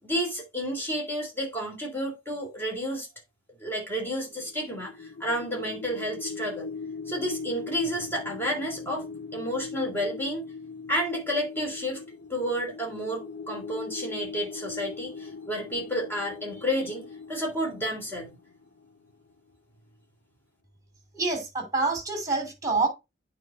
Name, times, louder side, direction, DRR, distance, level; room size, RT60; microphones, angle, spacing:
voice 1, 0.0-3.1 3.6-6.7 7.1-10.4 10.9-12.0 12.3-18.4, equal, 10° left, 3.0 m, -31 dB
sound 1, 4.2-19.2, left 5 dB, 85° left, 1.7 m, -40 dB
voice 2, 21.1-22.9, right 3 dB, 20° right, 3.1 m, -27 dB
9.0 x 4.3 x 4.3 m
head